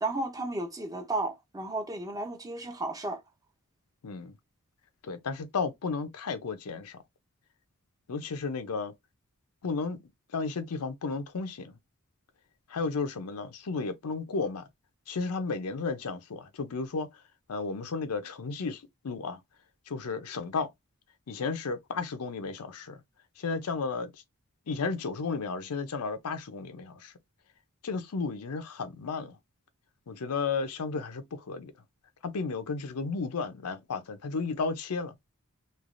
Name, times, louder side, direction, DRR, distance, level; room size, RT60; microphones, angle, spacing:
voice 1, 0.0-3.2, right 2 dB, 15° right, 0.5 m, -33 dB
voice 2, 4.0-4.3 5.0-7.0 8.1-8.9 9.6-10.0 10.3-11.8 12.7-14.7 15.1-17.2 17.5-19.4 19.9-20.7 21.3-23.0 23.4-24.2 24.7-27.1 27.8-29.4 30.1-31.7 32.2-35.2, left 4 dB, 90° left, 0.6 m, -33 dB
3.2 x 2.2 x 2.5 m
head